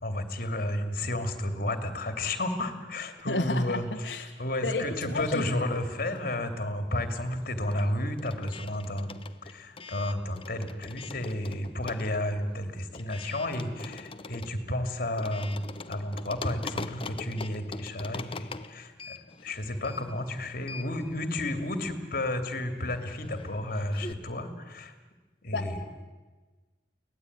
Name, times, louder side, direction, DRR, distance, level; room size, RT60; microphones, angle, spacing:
voice 1, 0.0-24.9 25.4-25.8, left 1 dB, 55° left, 8 dB, 2.8 m, -32 dB
voice 2, 3.3-4.2 4.6-5.4 25.5-25.7, left 2 dB, 75° left, 2 dB, 1.5 m, -31 dB
sound 1, 5.3-6.6 6.8-24.1, left 3 dB, 30° left, 1.0 m, -44 dB
24.0 x 18.5 x 9.5 m, 1.3 s
head